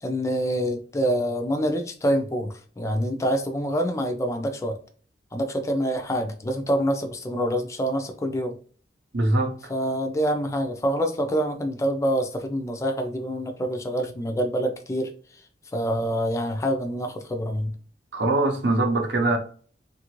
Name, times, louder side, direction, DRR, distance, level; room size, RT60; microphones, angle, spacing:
voice 1, 0.0-4.8 5.3-8.5 9.7-15.1 15.7-17.7, equal, 15° left, 0.3 m, -26 dB
voice 2, 9.1-9.5 18.1-19.4, right 2 dB, 75° right, 0.7 m, -22 dB
2.8 x 2.5 x 3.0 m
head